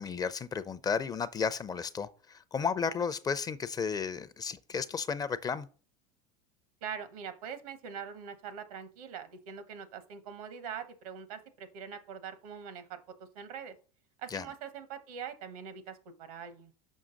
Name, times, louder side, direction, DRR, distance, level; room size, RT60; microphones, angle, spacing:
voice 1, 0.0-5.7 14.3-14.5, left 6 dB, 20° left, 0.4 m, -33 dB
voice 2, 6.8-13.0 13.3-13.7 14.2-16.7, right 7 dB, 85° right, 1.2 m, -43 dB
6.3 x 5.5 x 3.9 m
supercardioid pair, 115°, 18 cm